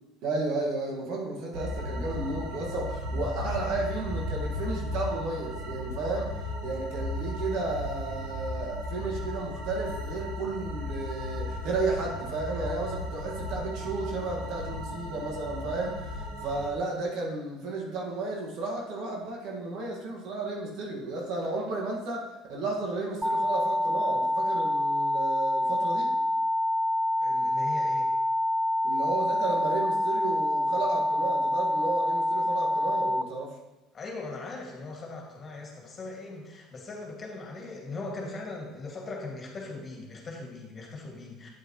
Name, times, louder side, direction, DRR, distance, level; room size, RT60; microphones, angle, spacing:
voice 1, 0.2-26.1 28.8-33.6, right 3 dB, 65° right, -1 dB, 1.8 m, -33 dB
sound 1, 1.5-16.7, left 1 dB, 80° right, 2.5 m, -35 dB
sound 2, 23.2-33.2, equal, 5° right, 0.4 m, -26 dB
voice 2, 27.2-28.1 33.9-41.5, left 3 dB, 35° left, 0 dB, 2.2 m, -40 dB
8.5 x 7.9 x 3.1 m, 1.1 s
hypercardioid pair, 75°, 0 cm